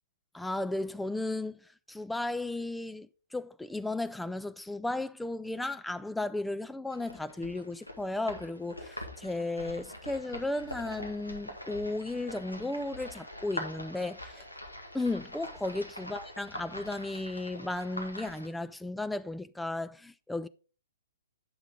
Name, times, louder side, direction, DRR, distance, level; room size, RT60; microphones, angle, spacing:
voice 1, 0.3-14.5 14.9-20.5, left 2 dB, 5° left, 0.4 m, -35 dB
sound 1, 6.9-18.5, left 1 dB, 90° left, 1.9 m, -44 dB
9.2 x 5.8 x 3.6 m
figure-of-eight pair, 120°, 0 cm